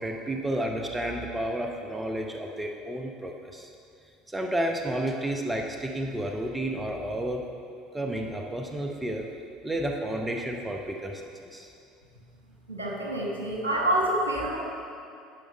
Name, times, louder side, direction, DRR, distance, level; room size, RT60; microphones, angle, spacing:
voice 1, 0.0-3.7 4.3-7.4 7.9-9.3 9.6-11.2 11.5-11.7, right 1 dB, 15° right, 2 dB, 0.8 m, -31 dB
voice 2, 12.7-14.6, right 1 dB, 85° right, -2 dB, 1.2 m, -27 dB
10.0 x 5.1 x 5.2 m, 2.5 s
hypercardioid pair, 70°, 0 cm